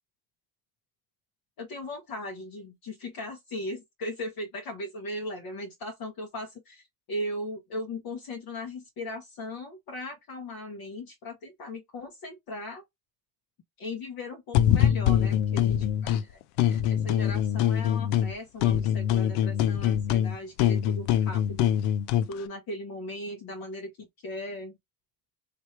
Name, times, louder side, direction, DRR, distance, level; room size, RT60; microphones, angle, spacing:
voice 1, 1.6-12.8 13.8-16.4 16.7-21.7 22.3-24.7, left 1 dB, 45° left, 1.1 m, -38 dB
sound 1, 14.5-16.2 16.6-18.3 18.6-22.3, left 10 dB, 70° left, 0.6 m, -24 dB
3.3 x 2.7 x 3.1 m
hypercardioid pair, 80°, 49 cm